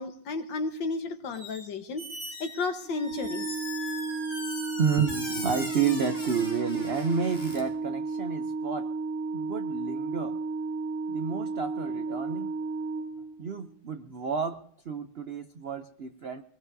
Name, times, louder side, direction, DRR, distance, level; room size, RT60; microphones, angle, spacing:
voice 1, 0.0-2.0 2.4-3.5 5.0-5.1, left 4 dB, 70° left, 7 dB, 1.9 m, -32 dB
Squeak, 1.3-1.7 2.0-7.6, left 1 dB, 15° left, 5.5 m, -40 dB
Organ, 2.8-13.7, right 3 dB, 40° right, 1.3 m, -33 dB
voice 2, 4.8-8.9 9.3-10.4 11.1-12.5 13.4-16.4, right 6 dB, 80° right, 8 dB, 0.5 m, -30 dB
23.0 x 19.5 x 2.7 m, 0.64 s
omnidirectional pair, 2.1 m